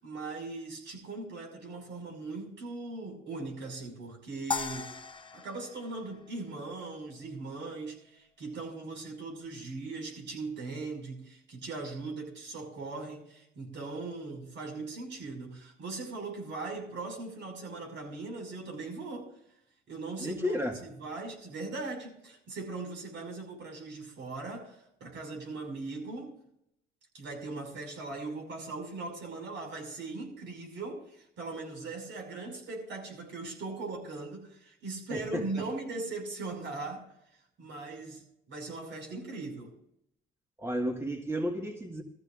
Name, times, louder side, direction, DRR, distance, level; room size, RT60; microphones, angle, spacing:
voice 1, 0.0-4.9 5.3-19.3 19.9-26.4 27.1-37.0 37.6-38.2 38.5-39.7, right 3 dB, 70° right, 2 dB, 5.7 m, -39 dB
sound 1, 4.5-6.9, left 4 dB, 25° left, 0.9 m, -38 dB
voice 2, 20.2-20.8 35.1-35.4 40.6-42.0, equal, 15° right, 3 dB, 1.6 m, -32 dB
20.5 x 14.5 x 2.5 m, 0.75 s
cardioid pair, 90°, 20 cm